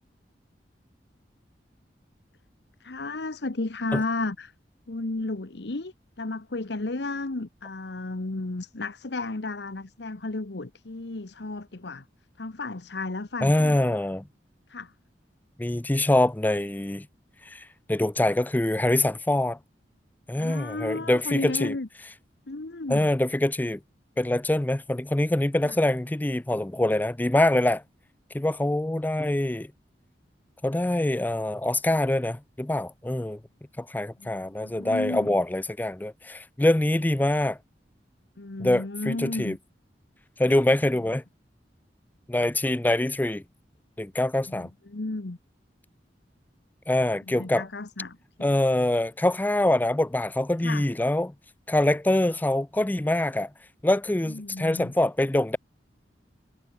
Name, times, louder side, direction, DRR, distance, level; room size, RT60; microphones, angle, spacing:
voice 1, 2.8-4.5 4.9-12.0 12.4-13.8 14.7-14.9 20.3-21.9 22.5-23.1 25.6-25.7 34.2-35.3 38.4-39.6 44.5-45.4 47.3-48.5 50.6-50.9 54.3-54.9, left 2 dB, 75° left, 1.1 m, -33 dB
voice 2, 13.4-14.2 15.6-17.1 17.5-19.6 20.3-21.8 22.9-23.8 24.2-27.8 28.3-29.7 30.6-33.4 33.8-37.6 38.6-39.6 40.4-41.2 42.3-43.4 44.0-44.7 46.9-47.6 48.4-51.3 51.7-53.5 53.8-55.6, left 1 dB, 10° left, 0.4 m, -24 dB
head